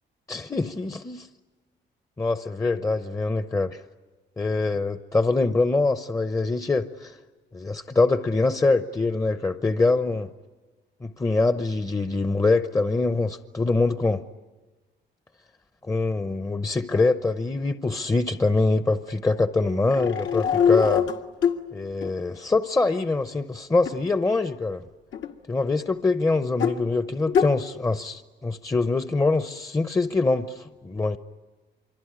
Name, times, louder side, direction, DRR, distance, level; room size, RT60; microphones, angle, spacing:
voice 1, 0.3-1.3 2.2-3.8 4.4-7.2 7.5-10.3 11.0-14.2 15.8-21.1 21.7-24.8 25.5-31.2, left 3 dB, 15° left, 10 dB, 0.8 m, -24 dB
sound 1, 19.9-21.6 22.0-22.1 23.8-23.9 25.1-25.3 26.5-26.8 27.3-27.5, left 7 dB, 75° left, 1.8 m, -22 dB
26.0 x 24.0 x 9.7 m, 1.2 s
cardioid pair, 90°, 20 cm